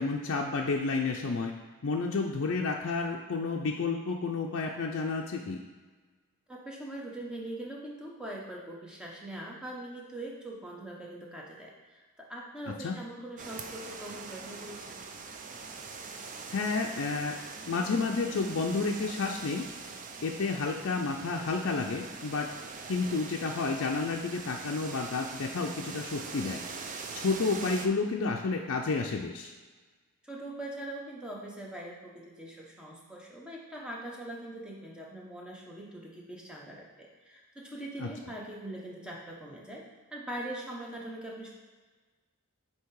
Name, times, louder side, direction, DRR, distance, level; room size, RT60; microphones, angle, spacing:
voice 1, 0.0-1.5 1.8-5.6 12.8-12.9 16.5-17.4 17.7-19.7 20.2-22.5 22.9-29.5 38.0-38.1, left 4 dB, 60° left, 0 dB, 0.4 m, -31 dB
voice 2, 6.5-15.0 30.2-41.5, right 1 dB, 5° right, -3 dB, 0.8 m, -42 dB
sound 1, 13.4-27.9, right 4 dB, 35° right, 0.4 m, -43 dB
8.1 x 2.8 x 4.7 m, 1.4 s
head